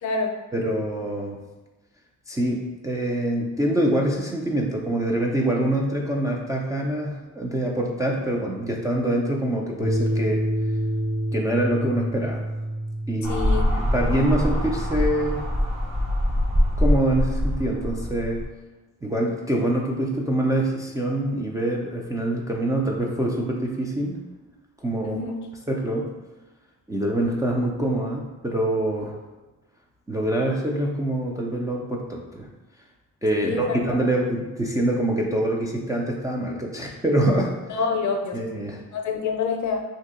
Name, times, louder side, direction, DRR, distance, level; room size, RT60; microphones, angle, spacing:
voice 1, 0.0-0.3 13.3-13.7 25.0-25.4 33.4-33.9 37.7-38.4 38.9-39.8, left 4 dB, 55° left, 3 dB, 0.5 m, -27 dB
voice 2, 0.5-1.4 2.3-10.4 11.3-12.4 13.1-15.4 16.8-18.4 19.0-24.2 24.8-25.2 25.7-26.1 26.9-29.2 30.1-32.5 33.2-37.6 38.3-38.8, right 1 dB, 10° right, -2 dB, 0.3 m, -25 dB
sound 1, 9.8-16.9, right 1 dB, 30° right, 1.4 m, -29 dB
sound 2, 13.2-18.4, left 1 dB, 55° right, 1.4 m, -24 dB
2.7 x 2.7 x 3.6 m, 1.2 s
cardioid pair, 110°, 34 cm